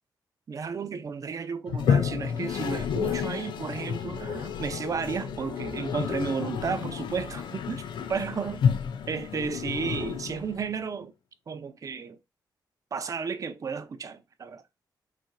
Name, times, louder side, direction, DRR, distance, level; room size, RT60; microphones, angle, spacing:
voice 1, 0.5-7.8 8.1-8.6 9.1-11.1 11.5-12.2 12.9-14.6, right 5 dB, 45° right, 0.5 m, -33 dB
Toilet flush, 1.7-10.8, left 7 dB, 80° left, 0.4 m, -30 dB
4.1 x 2.5 x 2.2 m
cardioid pair, 100°, 8 cm